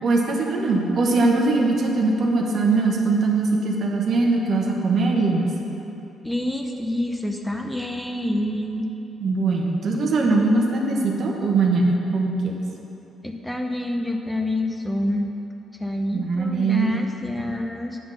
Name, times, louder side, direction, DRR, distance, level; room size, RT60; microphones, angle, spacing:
voice 1, 0.0-5.5 9.2-12.5 16.1-16.9, right 3 dB, 55° right, 0 dB, 1.1 m, -21 dB
voice 2, 6.2-8.9 13.2-15.3 15.8-18.0, left 1 dB, 5° left, 3 dB, 0.5 m, -27 dB
8.9 x 3.8 x 6.5 m, 3.0 s
cardioid pair, 90°, 0 cm